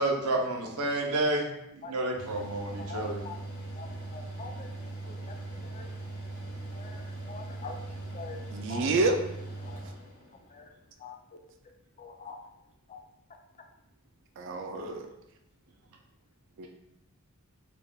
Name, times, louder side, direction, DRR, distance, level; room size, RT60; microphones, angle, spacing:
voice 1, 0.0-1.4 1.7-3.2, right 2 dB, 80° right, 0 dB, 0.8 m, -30 dB
Mechanical fan, 2.2-10.6, right 2 dB, 85° left, 1.1 m, -40 dB
voice 2, 2.8-3.4 3.8-3.9 4.1-4.5 5.8-5.9 6.8-7.0 7.3-7.8 8.1-8.4 8.7-8.9 9.7-9.8 11.0-11.1 12.0-12.4 12.9-13.0, left 4 dB, 30° left, 4 dB, 0.4 m, -42 dB
voice 3, 8.5-9.2 14.4-15.1 16.6-16.7, right 3 dB, 55° right, 5 dB, 0.4 m, -28 dB
4.2 x 3.5 x 2.3 m, 0.85 s
head